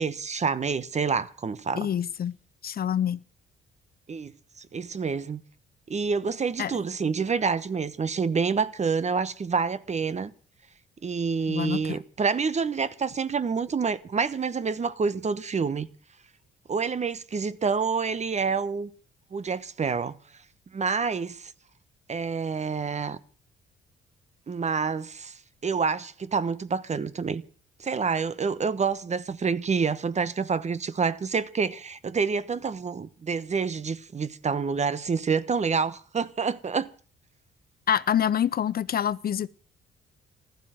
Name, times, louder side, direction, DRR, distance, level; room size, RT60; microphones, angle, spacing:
voice 1, 0.0-1.9 4.1-4.3 4.7-5.4 5.9-10.3 11.0-15.9 16.7-18.9 19.3-20.2 20.7-21.5 22.1-23.2 24.5-27.4 27.8-36.9, right 5 dB, 35° right, 1.1 m, -27 dB
voice 2, 1.8-2.4 2.6-3.2 6.6-6.8 11.5-12.0 37.9-39.5, left 9 dB, 50° left, 0.7 m, -26 dB
15.0 x 12.0 x 7.7 m
cardioid pair, 90°, 20 cm